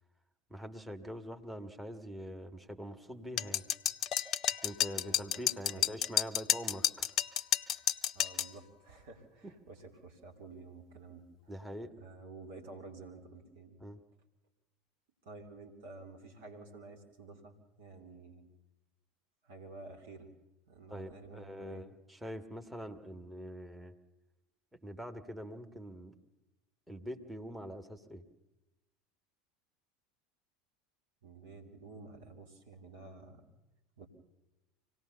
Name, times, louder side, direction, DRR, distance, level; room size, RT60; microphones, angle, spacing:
voice 1, 0.5-3.6 4.6-7.1 9.4-9.5 11.5-11.9 13.8-14.0 20.9-23.9 24.8-26.2 26.9-28.2, equal, 5° right, 8 dB, 1.9 m, -44 dB
sound 1, 3.4-8.5, left 11 dB, 40° left, 0.7 m, -31 dB
voice 2, 5.6-5.9 8.1-11.5 12.0-13.8 15.2-18.4 19.4-20.3 20.7-21.8 31.2-33.4 34.0-34.1, right 3 dB, 60° right, 3 dB, 3.0 m, -51 dB
25.5 x 18.0 x 7.0 m, 1.0 s
figure-of-eight pair, 75°, 0 cm